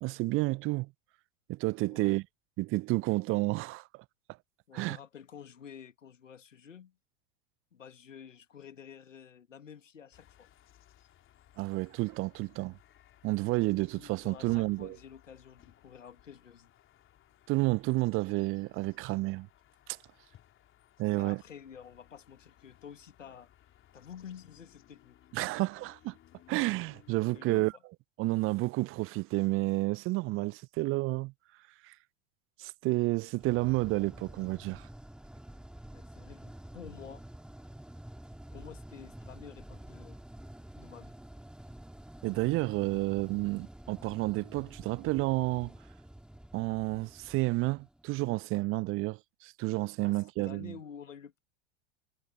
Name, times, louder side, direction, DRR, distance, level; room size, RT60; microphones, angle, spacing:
voice 1, 0.0-0.9 1.5-2.2 2.6-4.0 4.7-5.0 11.6-12.8 13.2-15.0 17.5-19.5 19.9-20.0 21.0-21.4 25.3-26.1 26.5-27.7 28.2-31.3 31.8-31.9 32.6-34.9 42.2-45.7 46.5-50.7, right 22 dB, 35° right, 0.8 m, -30 dB
voice 2, 4.7-7.0 7.7-10.5 14.0-16.7 21.2-23.5 23.9-25.2 27.3-27.7 35.9-37.2 38.5-40.2 40.8-41.2 50.0-51.4, left 8 dB, 75° left, 2.3 m, -50 dB
sound 1, 10.1-27.4, left 12 dB, 30° left, 3.5 m, -61 dB
sound 2, 33.4-48.4, right 1 dB, ahead, 2.4 m, -49 dB
figure-of-eight pair, 80°, 38 cm